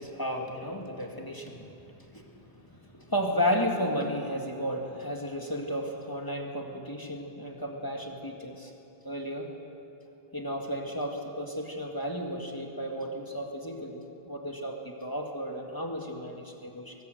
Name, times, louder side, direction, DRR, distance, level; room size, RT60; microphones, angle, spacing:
voice 1, 0.0-1.7 2.1-2.4 2.7-8.7 9.0-9.5 10.3-14.0 14.3-16.9, equal, 20° left, 1 dB, 2.1 m, -33 dB
23.5 x 19.0 x 7.9 m, 2.7 s
omnidirectional pair, 1.0 m